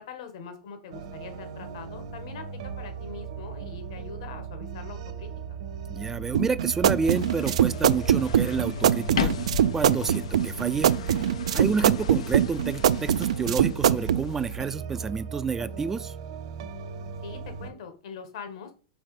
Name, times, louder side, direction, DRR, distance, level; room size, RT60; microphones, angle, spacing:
voice 1, 0.0-5.3 17.2-18.7, left 6 dB, 65° left, 1.4 m, -43 dB
sound 1, 0.9-17.7, right 6 dB, 70° right, 1.2 m, -38 dB
voice 2, 5.9-9.3 9.7-10.9 11.5-16.1, right 5 dB, 10° right, 0.3 m, -29 dB
sound 2, 6.3-14.2, right 10 dB, 90° right, 0.4 m, -22 dB
sound 3, 7.0-14.6, left 7 dB, 90° left, 0.6 m, -36 dB
5.9 x 4.1 x 4.8 m
supercardioid pair, 145°, 3 cm